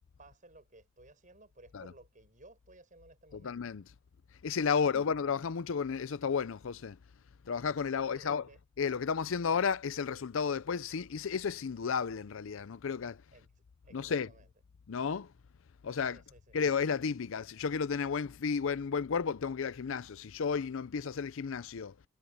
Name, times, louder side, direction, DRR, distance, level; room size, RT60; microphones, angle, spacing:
voice 1, 0.2-3.5 4.7-5.1 8.0-8.6 13.3-13.5 13.8-14.4 16.1-16.5, right 2 dB, 35° right, 6.8 m, -57 dB
voice 2, 3.3-3.8 4.4-7.0 7.5-8.5 8.8-13.2 13.9-14.3 14.9-15.3 15.8-16.2 16.5-22.0, left 6 dB, 65° left, 0.5 m, -32 dB
head